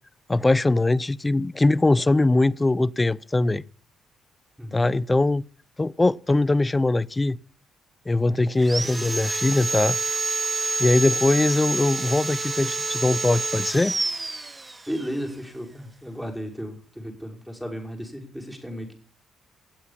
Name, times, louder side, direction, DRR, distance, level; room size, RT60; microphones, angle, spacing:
voice 1, 0.3-3.6 4.7-5.4 5.8-7.4 8.1-10.0 10.8-14.0, left 2 dB, 20° left, 0.6 m, -21 dB
voice 2, 4.6-4.9 14.9-18.9, equal, ahead, 6.0 m, -34 dB
Sawing, 8.6-15.1, right 3 dB, 25° right, 1.7 m, -28 dB
19.0 x 8.2 x 7.4 m
supercardioid pair, 70°, 0 cm